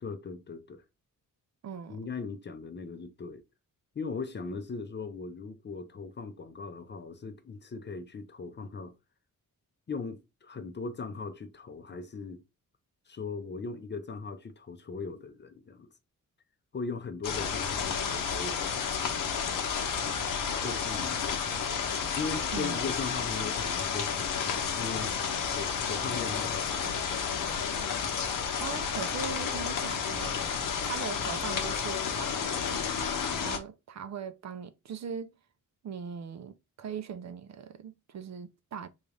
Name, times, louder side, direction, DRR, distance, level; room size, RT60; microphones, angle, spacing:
voice 1, 0.0-0.8 1.9-3.4 3.9-8.9 9.9-12.4 13.1-15.9 16.7-19.3 20.6-21.5 22.2-25.2 25.5-27.1, left 4 dB, 35° left, 0.6 m, -39 dB
voice 2, 1.6-2.0 22.5-22.9 28.6-30.4 30.8-35.3 35.8-38.9, right 7 dB, 55° right, 0.5 m, -40 dB
sound 1, 17.2-33.6, left 6 dB, 75° left, 0.9 m, -31 dB
3.9 x 2.5 x 3.2 m
wide cardioid pair, 160°, 33 cm